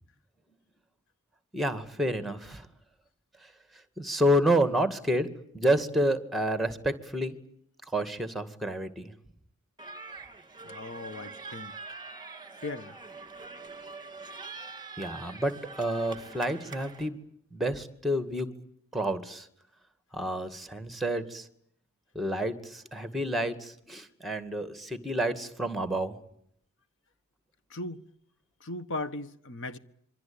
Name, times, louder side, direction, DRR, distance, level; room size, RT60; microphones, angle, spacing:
voice 1, 1.5-2.7 4.0-5.3 5.5-7.3 7.9-9.1 15.0-15.5 15.8-17.2 17.5-18.5 18.9-19.5 20.1-21.4 22.2-26.1, right 1 dB, ahead, 2.1 m, -29 dB
sound 1, 9.8-17.1, right 4 dB, 20° right, 2.9 m, -44 dB
voice 2, 10.6-11.7 12.6-13.0 27.7-28.0 28.6-29.8, left 2 dB, 60° left, 1.5 m, -37 dB
27.0 x 24.0 x 8.8 m
head